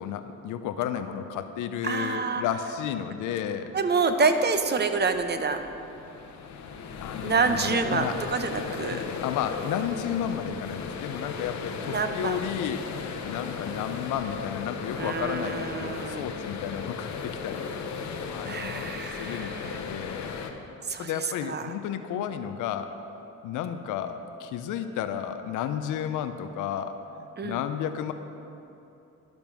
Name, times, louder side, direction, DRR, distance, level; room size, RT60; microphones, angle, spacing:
voice 1, 0.0-3.7 7.0-8.2 8.9-18.9 19.2-20.3 21.0-22.9 23.4-28.1, left 9 dB, 85° left, 9 dB, 0.6 m, -33 dB
voice 2, 1.8-2.4 3.7-5.7 7.2-9.0 11.9-12.4 15.0-16.2 18.4-19.8 20.8-21.7 27.4-27.6, right 4 dB, 35° right, 8 dB, 0.7 m, -27 dB
sound 1, 3.9-20.5, left 5 dB, 65° left, 0.9 m, -36 dB
12.5 x 5.3 x 6.0 m, 2.8 s
cardioid pair, 90°, 30 cm